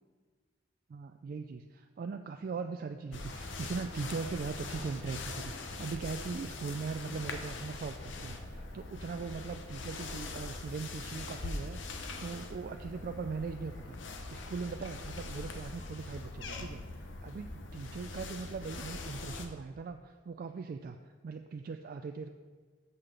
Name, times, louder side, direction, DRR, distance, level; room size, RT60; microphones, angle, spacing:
voice 1, 0.9-22.3, right 4 dB, 50° right, 6 dB, 0.3 m, -40 dB
sound 1, 3.1-19.5, left 3 dB, 85° left, 0.8 m, -42 dB
6.6 x 5.8 x 6.5 m, 1.5 s
head